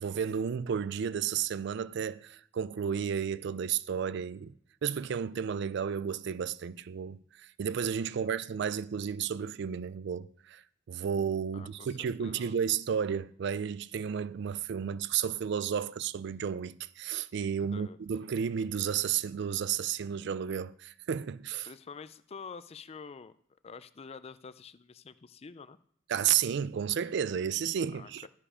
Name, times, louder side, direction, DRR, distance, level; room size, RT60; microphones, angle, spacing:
voice 1, 0.0-4.5 4.8-10.6 10.9-21.7 26.1-28.3, right 8 dB, 60° right, 0.4 m, -32 dB
voice 2, 11.5-12.6 17.7-18.0 21.7-23.3 23.6-25.8 27.9-28.3, left 5 dB, 30° left, 0.4 m, -47 dB
12.0 x 4.9 x 5.0 m
head